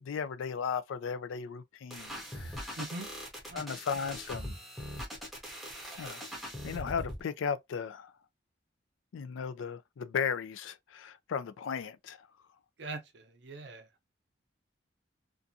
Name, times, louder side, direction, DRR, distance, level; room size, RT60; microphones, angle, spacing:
voice 1, 0.0-2.8 3.5-4.5 6.0-6.3 6.6-8.1 9.1-12.3, left 6 dB, 85° left, 0.3 m, -36 dB
sound 1, 1.9-7.2, equal, ahead, 0.6 m, -41 dB
voice 2, 2.8-3.1 3.5-3.8 12.8-13.9, right 2 dB, 60° right, 0.6 m, -42 dB
2.5 x 2.3 x 2.6 m
head